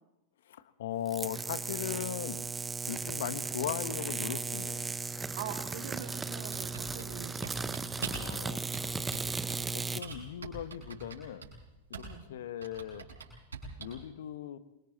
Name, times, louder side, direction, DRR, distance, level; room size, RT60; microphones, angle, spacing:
voice 1, 0.4-2.5 2.9-4.9 7.9-8.6 9.2-11.5 11.9-13.1 13.8-14.6, left 10 dB, 60° left, 13 dB, 1.3 m, -39 dB
sound 1, 1.1-10.0, right 4 dB, 10° right, 0.8 m, -36 dB
voice 2, 5.3-7.9 11.9-12.2, right 8 dB, 55° right, 6 dB, 2.9 m, -44 dB
Typing, 6.5-8.4 8.7-9.7 10.0-12.3 12.6-14.0, right 4 dB, 70° right, 6.8 m, -43 dB
28.0 x 24.5 x 4.2 m, 0.93 s
figure-of-eight pair, 90°, 0 cm